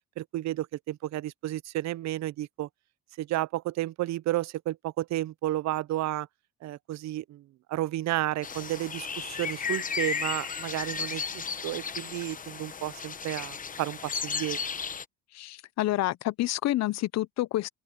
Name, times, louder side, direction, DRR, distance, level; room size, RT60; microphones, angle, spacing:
voice 1, 0.2-2.7 3.2-6.3 6.6-14.6, right 15 dB, 60° right, 0.6 m, -32 dB
sound 1, 8.4-15.0, left 6 dB, 25° left, 1.0 m, -34 dB
voice 2, 15.3-17.7, left 15 dB, 60° left, 0.7 m, -28 dB
open air
cardioid pair, 115°, 31 cm